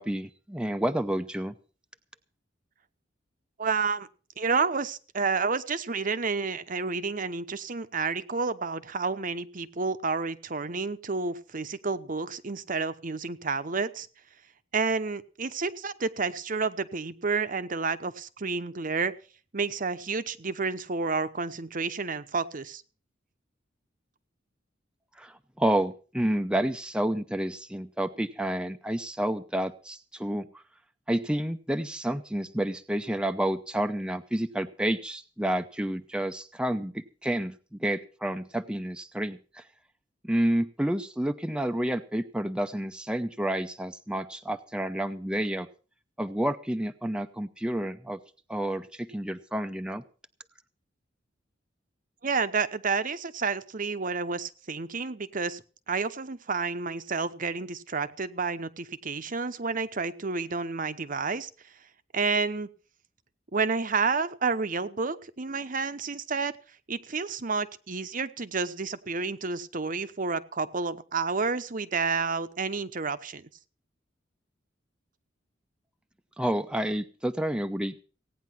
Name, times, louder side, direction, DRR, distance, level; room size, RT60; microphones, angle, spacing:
voice 1, 0.0-1.5 25.2-30.5 31.1-39.6 40.2-45.7 46.2-48.2 48.5-50.0 76.4-78.0, right 1 dB, 5° right, 8 dB, 0.6 m, -30 dB
voice 2, 3.6-4.1 4.4-14.1 14.7-19.1 19.5-22.8 52.2-61.5 62.1-62.7 63.5-66.5 66.9-73.4, right 4 dB, 45° right, 12 dB, 0.9 m, -30 dB
17.0 x 9.5 x 5.9 m, 0.38 s
head